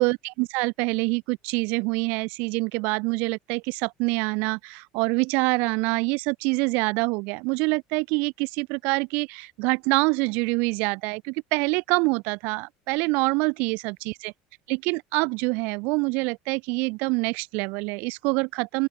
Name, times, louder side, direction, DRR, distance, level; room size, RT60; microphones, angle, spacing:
voice 1, 0.0-14.3 14.7-18.9, right 29 dB, 55° right, 1.9 m, -26 dB
open air
cardioid pair, 175°, 3 cm